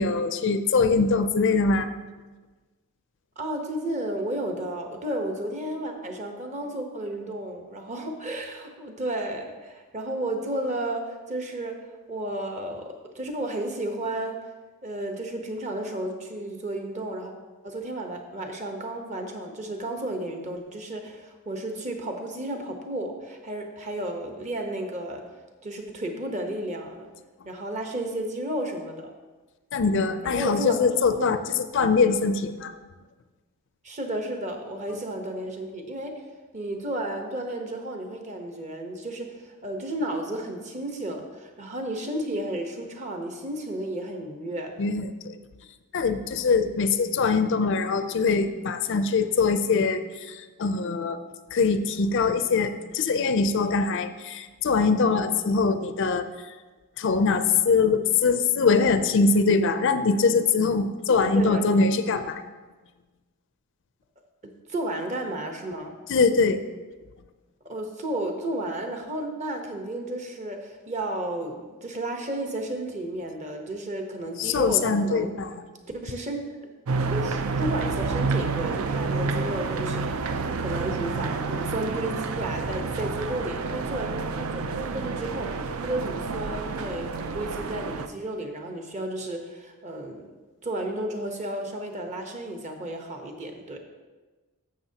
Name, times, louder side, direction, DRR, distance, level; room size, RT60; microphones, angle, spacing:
voice 1, 0.0-1.9 29.7-32.7 44.8-45.4 45.9-51.2 51.5-56.5 57.0-62.4 66.1-66.6 74.4-75.6, left 4 dB, 55° left, 10 dB, 0.4 m, -23 dB
voice 2, 3.4-11.7 12.1-14.4 14.8-17.3 17.6-25.2 25.6-27.1 27.4-29.1 30.2-30.8 31.1-31.2 33.8-36.2 36.5-44.7 61.3-61.6 64.7-65.9 67.6-75.3 75.9-76.4 77.1-90.3 90.6-93.8, right 1 dB, 30° right, 4 dB, 0.9 m, -33 dB
sound 1, 76.9-88.1, right 4 dB, 70° right, 0.5 m, -29 dB
11.5 x 7.4 x 2.8 m, 1.3 s
head